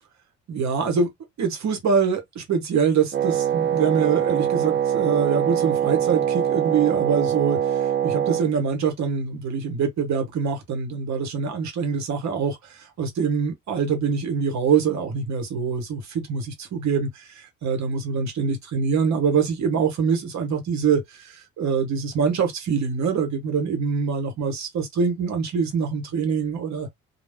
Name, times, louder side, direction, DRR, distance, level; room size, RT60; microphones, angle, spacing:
voice 1, 0.5-1.1 1.4-26.9, right 6 dB, 65° right, 1.2 m, -24 dB
Wind instrument woodwind instrument, 3.1-8.5, right 10 dB, 40° right, 0.5 m, -23 dB
2.3 x 2.1 x 3.4 m
cardioid pair, 90°, 30 cm